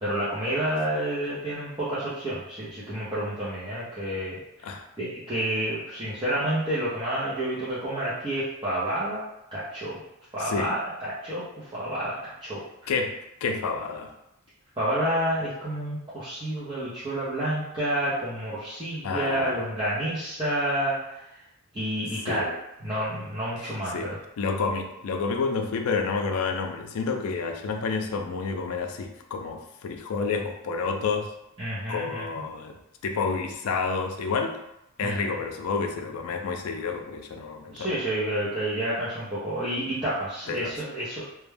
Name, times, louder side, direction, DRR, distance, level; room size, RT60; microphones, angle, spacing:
voice 1, 0.0-4.4 5.0-9.2 9.5-10.0 10.3-12.9 14.8-21.2 21.7-22.5 22.8-24.2 31.6-32.4 35.0-35.4 37.7-41.2, right 1 dB, 20° right, -11 dB, 0.5 m, -29 dB
voice 2, 12.9-14.1 19.0-19.6 22.3-22.5 23.6-31.3 31.9-32.7 33.0-34.6 35.0-37.9 40.5-40.8, left 4 dB, 75° left, 5 dB, 0.4 m, -29 dB
2.2 x 2.1 x 3.2 m, 0.84 s
head